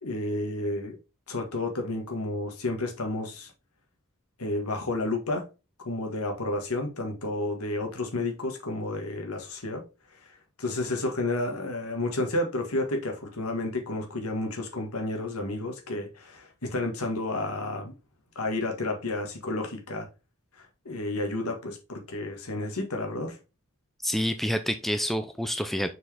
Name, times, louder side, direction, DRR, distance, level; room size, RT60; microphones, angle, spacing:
voice 1, 0.0-1.0 1.3-3.5 4.4-5.5 5.9-9.8 10.6-17.9 18.4-20.1 20.6-23.4, left 2 dB, 75° left, 1.8 m, -31 dB
voice 2, 24.0-25.9, equal, ahead, 0.4 m, -28 dB
6.3 x 4.7 x 3.5 m
head